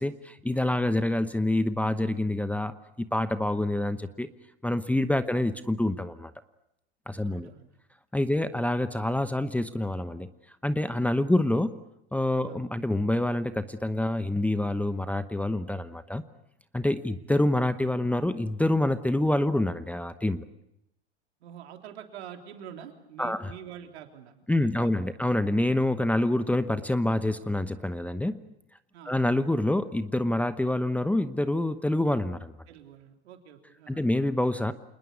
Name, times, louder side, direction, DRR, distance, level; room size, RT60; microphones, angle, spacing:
voice 1, 0.0-4.3 4.6-6.3 7.1-7.5 8.1-10.3 10.6-11.8 12.1-16.2 16.7-20.5 23.2-23.5 24.5-28.4 29.0-32.5 33.9-34.7, left 1 dB, 5° left, 12 dB, 0.9 m, -27 dB
voice 2, 7.2-7.7 8.3-8.5 11.3-11.4 12.4-12.6 17.1-17.3 21.4-25.2 28.9-29.2 32.7-34.1, right 9 dB, 70° right, 4 dB, 3.6 m, -46 dB
28.0 x 20.5 x 8.2 m, 0.81 s
hypercardioid pair, 100°, 33 cm